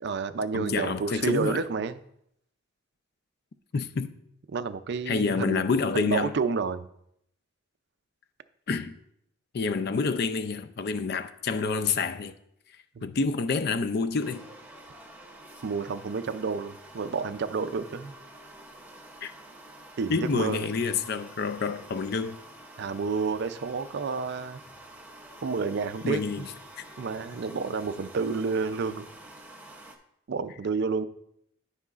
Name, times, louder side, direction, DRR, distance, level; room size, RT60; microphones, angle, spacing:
voice 1, 0.0-2.0 4.5-5.6 5.9-6.8 13.0-13.1 15.6-18.1 20.0-20.6 22.8-24.6 25.4-26.5 27.0-29.0 30.3-31.1, right 4 dB, 55° right, 0.4 m, -30 dB
voice 2, 0.5-1.6 3.7-4.1 5.1-6.3 8.7-9.0 9.5-12.3 13.0-14.4 19.2-19.3 20.1-22.4 26.0-26.5, left 4 dB, 50° left, 0.4 m, -28 dB
sound 1, 14.2-30.0, right 1 dB, 10° right, 0.7 m, -48 dB
13.5 x 5.5 x 2.4 m
head